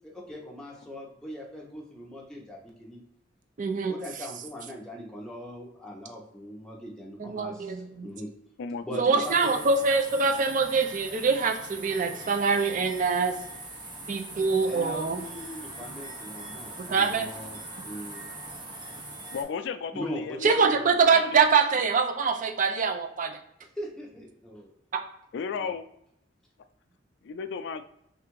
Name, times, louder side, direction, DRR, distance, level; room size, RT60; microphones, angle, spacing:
voice 1, 0.0-3.0 3.9-7.8 8.0-8.3 8.8-9.6 14.6-18.3 19.9-20.9 23.8-24.7 25.5-25.7, equal, 5° left, -3 dB, 0.8 m, -40 dB
voice 2, 3.6-4.0 7.2-8.1 9.0-13.4 14.1-15.2 16.8-17.3 20.4-23.4 24.9-25.0, right 5 dB, 45° right, 6 dB, 0.4 m, -24 dB
voice 3, 8.6-9.0 19.3-20.7 21.0-21.4 21.8-21.9 25.3-25.9 27.3-27.8, left 5 dB, 65° left, 10 dB, 0.3 m, -34 dB
sound 1, 9.2-19.4, right 2 dB, 25° right, 0.8 m, -41 dB
3.4 x 2.5 x 4.5 m, 0.76 s
head